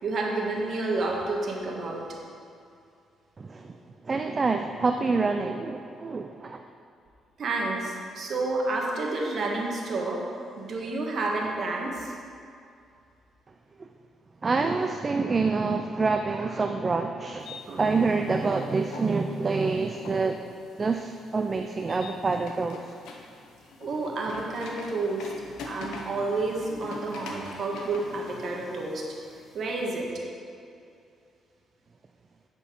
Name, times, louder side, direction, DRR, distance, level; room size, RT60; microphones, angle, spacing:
voice 1, 0.0-2.0 7.4-10.2 10.6-12.1 17.7-17.8 23.8-25.3 25.6-29.0 29.5-30.2, right 2 dB, 55° right, -1 dB, 1.4 m, -30 dB
voice 2, 3.4-3.8 4.0-6.7 14.4-20.4 20.8-22.8, right 4 dB, 35° right, 5 dB, 0.4 m, -27 dB
sound 1, 17.4-29.9, left 3 dB, 85° left, 0.9 m, -45 dB
10.5 x 4.5 x 4.5 m, 2.4 s
cardioid pair, 90°, 0 cm